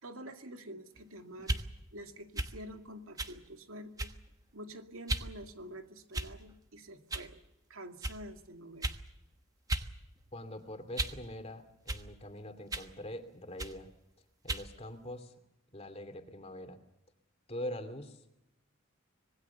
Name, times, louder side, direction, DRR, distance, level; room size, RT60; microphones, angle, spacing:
voice 1, 0.0-1.6 1.9-4.1 4.5-7.4 7.7-9.0, right 1 dB, 90° right, 6 dB, 2.2 m, -47 dB
sound 1, 1.4-1.7 2.4-2.6 3.2-3.4 4.0-4.3 5.1-5.3 6.1-6.5 7.1-7.3 8.0-8.2 8.8-9.0 9.7-9.9 10.3-11.2 11.9-12.1 12.7-12.9 13.6-13.8 14.5-14.7, right 2 dB, 15° right, 1.2 m, -35 dB
voice 2, 10.3-13.9 14.4-15.3 15.7-16.8 17.5-18.4, left 1 dB, 30° left, 8 dB, 2.6 m, -43 dB
26.0 x 20.0 x 7.0 m, 0.87 s
head